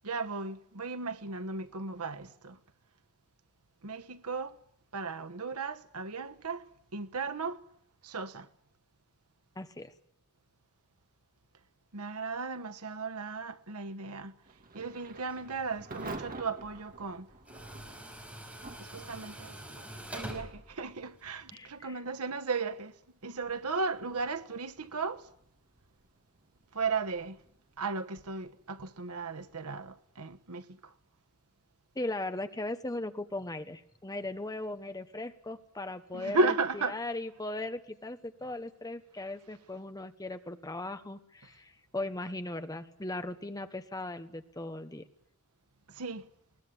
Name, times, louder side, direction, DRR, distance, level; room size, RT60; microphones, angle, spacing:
voice 1, 0.0-2.6 3.8-4.6 4.9-6.6 6.9-7.6 8.0-8.5 11.9-14.3 14.7-17.3 18.8-19.5 20.1-25.3 26.7-27.4 27.8-30.9 36.1-37.0 45.9-46.3, right 3 dB, 85° right, 1.3 m, -35 dB
voice 2, 9.6-9.9 21.5-22.0 31.9-45.1, left 2 dB, 15° left, 1.2 m, -38 dB
Thunder / Rain, 14.4-31.2, right 2 dB, 40° right, 2.2 m, -51 dB
Tools, 15.3-21.5, right 1 dB, 5° right, 5.0 m, -47 dB
21.0 x 19.0 x 9.8 m
head